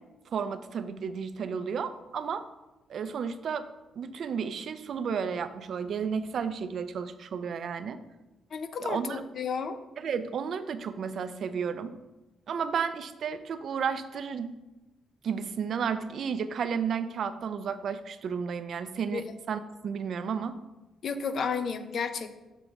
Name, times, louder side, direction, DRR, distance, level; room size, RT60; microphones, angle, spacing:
voice 1, 0.3-2.4 2.9-3.7 4.0-8.0 8.8-9.2 10.0-12.0 12.5-14.6 15.2-20.6, right 6 dB, 60° right, 12 dB, 0.4 m, -32 dB
voice 2, 8.5-9.8 19.1-19.3 21.0-22.4, left 5 dB, 55° left, 10 dB, 0.6 m, -32 dB
6.7 x 5.9 x 3.6 m, 1.1 s
cardioid pair, 90°, 0 cm